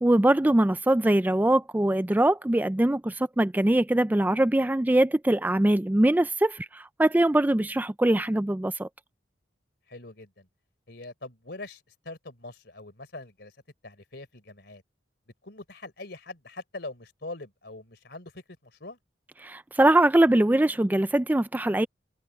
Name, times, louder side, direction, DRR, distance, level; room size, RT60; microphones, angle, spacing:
voice 1, 0.0-8.9 19.4-21.9, right 1 dB, 10° right, 0.4 m, -22 dB
voice 2, 9.9-10.5 10.9-13.5 13.8-14.8 15.4-19.0, left 2 dB, 65° left, 4.0 m, -43 dB
head